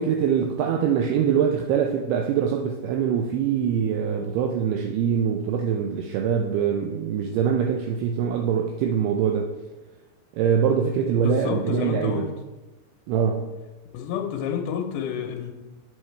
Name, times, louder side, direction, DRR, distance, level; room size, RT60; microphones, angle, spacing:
voice 1, 0.0-9.5 10.4-12.3 13.1-13.5, right 7 dB, 85° right, 2.3 m, -23 dB
voice 2, 11.2-12.3 13.9-15.5, left 7 dB, 80° left, 2.2 m, -29 dB
8.4 x 7.6 x 3.2 m
omnidirectional pair, 5.1 m